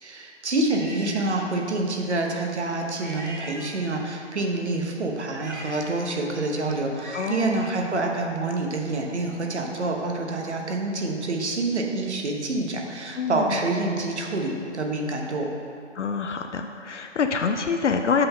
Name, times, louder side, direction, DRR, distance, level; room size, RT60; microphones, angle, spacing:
voice 1, 0.0-15.5, right 2 dB, 65° right, 1 dB, 1.1 m, -27 dB
sound 1, 0.7-1.3 3.0-4.1 5.3-7.6, right 1 dB, 40° right, 1.1 m, -41 dB
voice 2, 7.1-7.6 13.2-13.6 15.9-18.3, left 5 dB, 70° left, 5 dB, 0.5 m, -26 dB
7.6 x 4.1 x 5.4 m, 2.4 s
hypercardioid pair, 170°, 37 cm